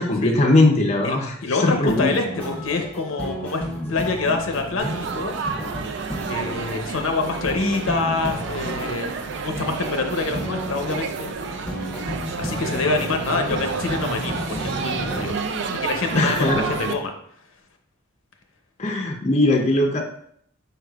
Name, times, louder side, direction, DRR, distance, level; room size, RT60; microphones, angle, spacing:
voice 1, 0.0-2.1 16.1-16.7 18.8-20.0, left 2 dB, 35° left, 1 dB, 0.5 m, -20 dB
voice 2, 1.0-3.6 3.9-5.3 6.3-11.3 12.3-17.1, left 3 dB, 80° left, 4 dB, 0.7 m, -26 dB
sound 1, 1.9-15.3, equal, 5° left, 0.9 m, -33 dB
Laughter / Chatter / Crowd, 4.8-16.9, right 5 dB, 55° right, 0.3 m, -30 dB
4.8 x 4.6 x 2.3 m, 0.66 s
head